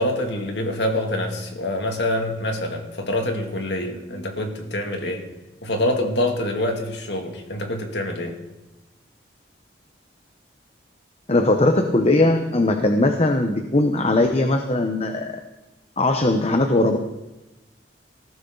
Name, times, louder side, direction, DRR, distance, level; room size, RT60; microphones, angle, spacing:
voice 1, 0.0-5.2 5.6-8.4, left 1 dB, 65° left, 3 dB, 2.5 m, -25 dB
voice 2, 11.3-15.4 16.0-17.0, left 2 dB, 35° left, 6 dB, 0.9 m, -19 dB
19.0 x 15.0 x 4.0 m, 1.0 s
head